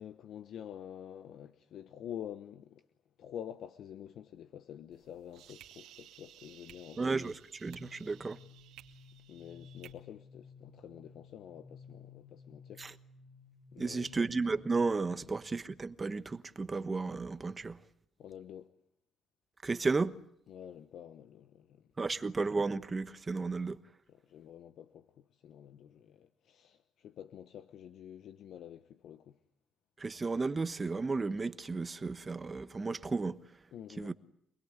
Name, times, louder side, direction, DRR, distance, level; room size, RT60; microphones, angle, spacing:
voice 1, 0.0-2.8 3.2-7.1 9.3-12.8 13.7-14.3 18.2-18.7 20.5-21.9 24.1-29.4 33.7-34.1, left 10 dB, 70° left, 1.1 m, -48 dB
sound 1, 4.9-9.9, right 12 dB, 85° right, 2.5 m, -57 dB
voice 2, 7.0-8.4 12.8-12.9 13.8-17.8 19.6-20.1 22.0-23.8 30.0-33.4 34.0-34.1, right 3 dB, 25° right, 1.2 m, -33 dB
sound 2, 7.7-15.2, left 5 dB, 5° left, 2.4 m, -55 dB
26.5 x 20.5 x 9.8 m
cardioid pair, 120°, 0 cm